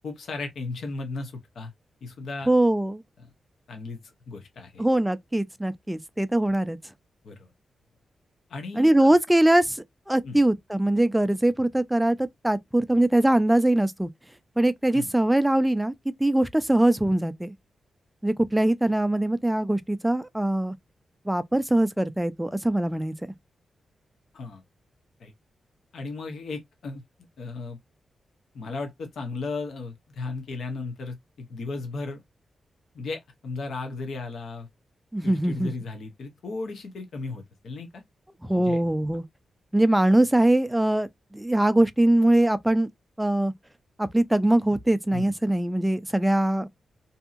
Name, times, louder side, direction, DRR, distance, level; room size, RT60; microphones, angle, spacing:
voice 1, 0.0-1.7 2.0-2.5 3.7-4.0 4.3-4.8 7.2-7.5 8.5-9.1 10.2-10.4 14.9-15.1 24.3-24.6 25.2-25.3 25.9-27.0 27.4-27.8 28.5-32.2 32.9-34.7 35.2-38.0 38.5-38.8 45.1-45.3, left 3 dB, 75° left, 0.8 m, -35 dB
voice 2, 2.5-3.0 4.8-6.8 8.8-14.1 14.6-15.9 16.2-17.5 18.2-20.7 21.3-23.1 35.1-35.7 38.4-39.2 39.7-42.9 43.2-43.5 44.0-46.7, right 1 dB, 5° right, 0.3 m, -22 dB
2.7 x 2.6 x 2.3 m
wide cardioid pair, 120°, 0 cm